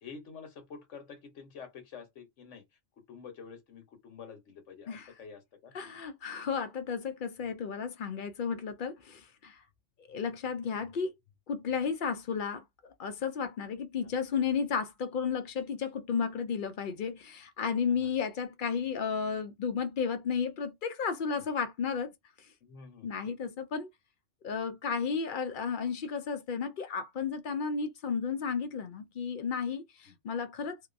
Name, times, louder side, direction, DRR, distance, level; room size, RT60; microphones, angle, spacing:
voice 1, 0.0-2.6 3.1-5.7 14.0-14.1 17.9-18.1 21.3-21.5 22.6-23.1 30.0-30.2, left 6 dB, 80° left, 1.3 m, -48 dB
voice 2, 5.7-9.6 10.1-11.1 11.5-22.1 23.0-23.9 24.4-30.8, left 6 dB, 60° left, 0.5 m, -33 dB
2.8 x 2.2 x 2.5 m
omnidirectional pair, 1.2 m